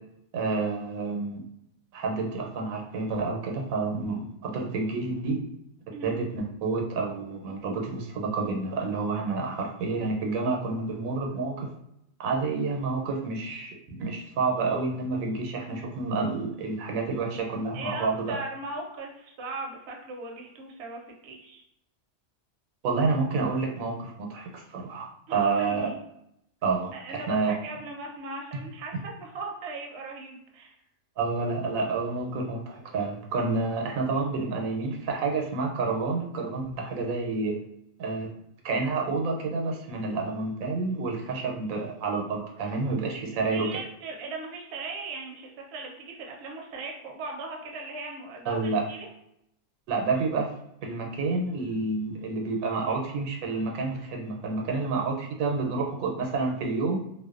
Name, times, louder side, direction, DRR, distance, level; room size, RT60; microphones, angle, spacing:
voice 1, 0.3-1.4 1.9-5.4 6.0-11.7 12.2-18.4 22.8-25.9 26.6-27.5 31.2-37.5 38.0-38.3 38.6-43.7 48.4-48.8 49.9-50.5 50.8-57.0, right 3 dB, 90° right, 1 dB, 1.0 m, -29 dB
voice 2, 17.7-21.6 25.3-26.0 26.9-30.8 42.6-42.7 43.4-49.1, right 3 dB, 65° right, 0 dB, 0.7 m, -38 dB
2.5 x 2.1 x 2.3 m, 0.80 s
omnidirectional pair, 1.4 m